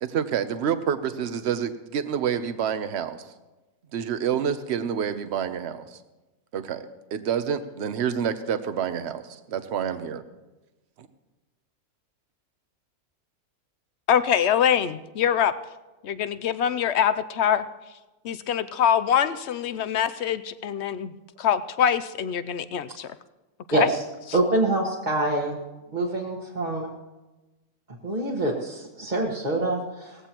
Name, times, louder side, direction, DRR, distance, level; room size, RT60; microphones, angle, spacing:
voice 1, 0.0-3.2 3.9-6.0 6.5-10.2 11.0-11.1, right 8 dB, 55° right, 10 dB, 1.0 m, -28 dB
voice 2, 14.1-15.5 16.0-17.6 18.2-21.1 21.4-23.1 23.7-23.9, left 9 dB, 65° left, 13 dB, 0.7 m, -24 dB
voice 3, 23.7-24.0 24.3-25.6 25.9-26.9 28.0-30.3, right 2 dB, 30° right, -3 dB, 1.5 m, -25 dB
18.5 x 15.0 x 3.0 m, 1.1 s
omnidirectional pair, 1.5 m